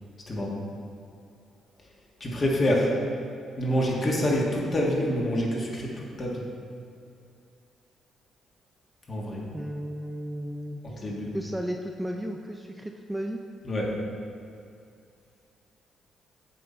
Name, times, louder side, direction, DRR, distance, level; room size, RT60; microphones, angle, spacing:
voice 1, 0.3-0.6 2.2-2.9 3.6-6.4 9.1-9.4 10.9-11.3 13.6-13.9, equal, 35° left, -3 dB, 1.4 m, -26 dB
voice 2, 9.5-10.8 11.3-13.4, equal, 5° right, 2 dB, 0.4 m, -34 dB
7.6 x 3.8 x 4.3 m, 2.4 s
cardioid pair, 90°, 0 cm